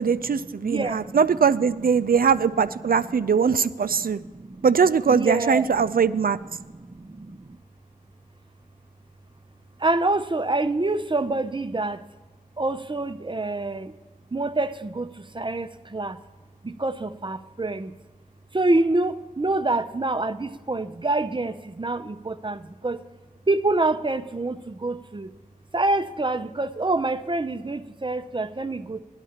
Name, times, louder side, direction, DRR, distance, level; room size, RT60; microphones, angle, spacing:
voice 1, 0.0-4.2 4.6-6.4, right 6 dB, 80° right, 12 dB, 0.4 m, -21 dB
voice 2, 0.6-1.2 3.0-3.1 4.0-4.7 5.1-5.7 6.8-7.6 9.8-12.0 12.6-13.9 14.3-16.2 16.6-17.9 18.5-23.0 23.5-25.3 25.7-29.0, right 2 dB, 35° right, 10 dB, 0.6 m, -26 dB
17.5 x 12.0 x 2.9 m, 1.2 s
wide cardioid pair, 40°, 15 cm